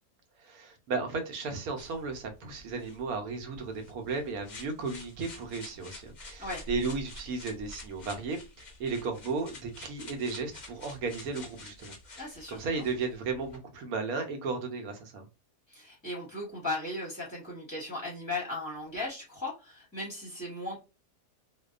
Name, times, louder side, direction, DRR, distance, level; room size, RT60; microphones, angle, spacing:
voice 1, 0.4-15.3, right 4 dB, 70° right, 1.0 m, -35 dB
sound 1, 1.8-13.6, left 2 dB, 55° left, 0.5 m, -48 dB
voice 2, 12.2-12.8 15.7-20.8, left 2 dB, 20° left, 0.6 m, -37 dB
2.6 x 2.1 x 2.3 m
omnidirectional pair, 1.6 m